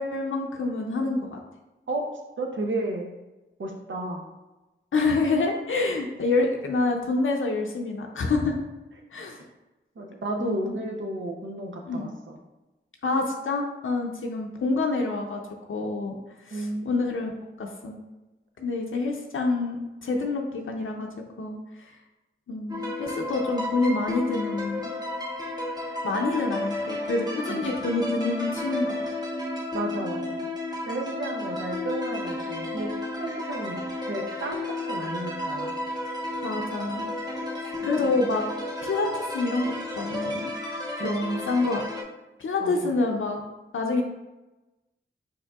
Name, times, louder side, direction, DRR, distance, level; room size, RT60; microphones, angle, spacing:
voice 1, 0.0-1.4 4.9-8.6 9.1-9.4 10.4-10.6 11.9-12.1 13.0-15.4 15.7-16.2 16.5-18.0 18.6-21.1 21.4-21.6 22.5-24.9 26.0-29.0 36.4-37.1 37.8-38.4 38.8-40.4 41.0-41.8 42.4-43.4 43.7-44.0, left 3 dB, 70° left, 1 dB, 0.6 m, -27 dB
voice 2, 2.4-3.1 3.6-4.3 10.0-12.4 16.5-16.9 27.5-27.6 29.7-30.5 30.8-32.9 33.2-33.8 34.0-35.8 38.0-38.1 41.0-41.4 42.6-42.9, right 2 dB, 65° right, 2 dB, 0.7 m, -32 dB
sound 1, 22.7-42.0, left 2 dB, 20° right, 1.1 m, -32 dB
4.9 x 4.5 x 2.4 m, 1.0 s
cardioid pair, 45°, 21 cm